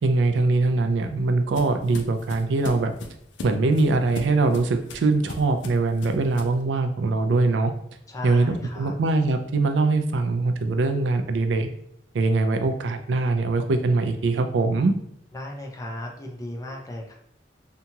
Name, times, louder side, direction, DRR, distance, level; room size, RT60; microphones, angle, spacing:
voice 1, 0.0-2.9 3.4-7.7 8.2-11.7 12.1-14.9, right 3 dB, 90° right, 7 dB, 0.4 m, -22 dB
sound 1, 0.6-6.6, left 3 dB, 85° left, 0.4 m, -39 dB
voice 2, 8.1-8.9 15.3-17.1, left 1 dB, 20° left, 0 dB, 0.4 m, -35 dB
2.8 x 2.3 x 2.8 m, 0.72 s
head